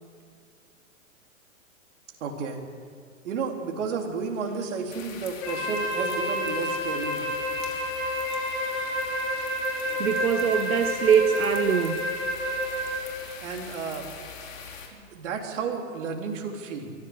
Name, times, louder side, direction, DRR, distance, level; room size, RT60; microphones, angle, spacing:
voice 1, 2.2-2.6 3.2-7.3 13.4-14.0 14.9-16.9, right 5 dB, 60° right, 2 dB, 3.8 m, -32 dB
sound 1, 4.9-14.9, left 6 dB, 70° left, 4.2 m, -42 dB
Wind instrument woodwind instrument, 5.4-13.0, equal, 55° left, 7.9 m, -29 dB
voice 2, 10.0-12.1, right 7 dB, 85° right, 7 dB, 1.3 m, -23 dB
23.5 x 15.5 x 8.1 m, 2.1 s
hypercardioid pair, 115°, 41 cm